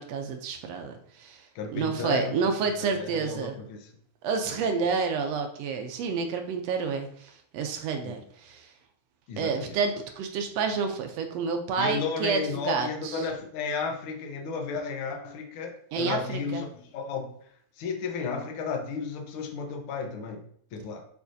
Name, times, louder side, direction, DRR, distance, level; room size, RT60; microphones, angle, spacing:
voice 1, 0.0-1.4 1.7-3.6 4.2-8.7 9.4-13.2 15.9-16.6, right 5 dB, 75° right, 5 dB, 1.5 m, -29 dB
voice 2, 1.5-2.3 2.8-3.9 4.4-4.6 8.0-8.2 9.3-9.7 11.8-17.3 17.8-21.1, left 5 dB, 70° left, 4 dB, 1.3 m, -33 dB
7.1 x 5.3 x 2.6 m, 0.62 s
omnidirectional pair, 3.5 m